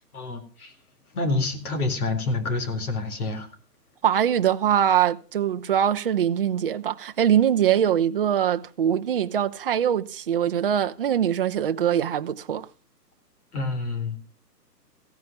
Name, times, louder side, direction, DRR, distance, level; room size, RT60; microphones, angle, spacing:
voice 1, 0.1-0.7 1.1-3.5 13.5-14.2, left 3 dB, 60° left, 4.1 m, -27 dB
voice 2, 4.0-12.7, right 9 dB, 35° right, 0.7 m, -23 dB
16.0 x 9.4 x 6.7 m
hypercardioid pair, 155°, 49 cm